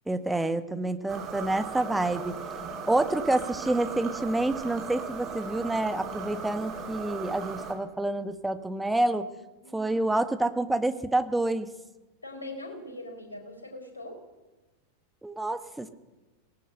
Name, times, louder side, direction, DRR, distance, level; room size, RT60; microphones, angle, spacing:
voice 1, 0.1-2.4 2.9-9.3 9.7-11.7 15.2-15.9, right 2 dB, 5° right, 10 dB, 1.4 m, -28 dB
sound 1, 1.1-7.7, right 5 dB, 30° right, 4.8 m, -38 dB
voice 2, 9.6-9.9 12.2-14.2, left 1 dB, 80° left, 3 dB, 5.1 m, -41 dB
22.5 x 19.0 x 6.8 m, 1.1 s
figure-of-eight pair, 90°, 0 cm